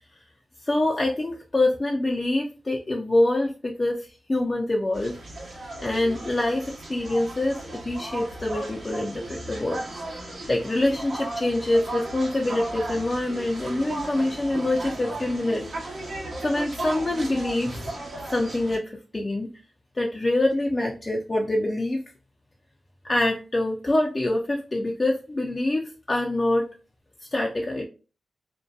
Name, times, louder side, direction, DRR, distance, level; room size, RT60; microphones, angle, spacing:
voice 1, 0.6-5.2 5.8-9.8 10.5-16.1 16.4-17.9 18.2-19.5 19.9-22.0 23.1-26.7 27.3-27.9, left 1 dB, 35° left, 0 dB, 0.4 m, -25 dB
sound 1, 4.9-18.8, right 2 dB, 65° right, 0.8 m, -36 dB
2.6 x 2.1 x 2.2 m, 0.33 s
cardioid pair, 55°, 0 cm